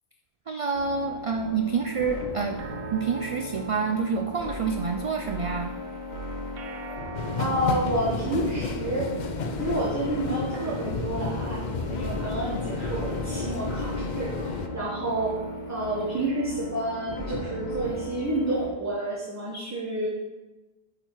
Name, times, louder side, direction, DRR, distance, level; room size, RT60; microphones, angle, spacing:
voice 1, 0.5-2.6 2.9-5.7, right 5 dB, 50° right, 5 dB, 0.4 m, -28 dB
sound 1, 0.7-18.7, left 1 dB, 85° left, 1.6 m, -37 dB
sound 2, 2.6-5.2 6.5-9.1 10.5-13.1, right 4 dB, 70° right, 0.9 m, -43 dB
sound 3, 7.1-14.7, left 3 dB, 50° left, 0.7 m, -32 dB
voice 2, 7.4-9.0 9.6-11.6 11.9-20.1, right 1 dB, 15° right, -5 dB, 1.1 m, -29 dB
8.8 x 5.0 x 4.6 m, 1.2 s
omnidirectional pair, 1.0 m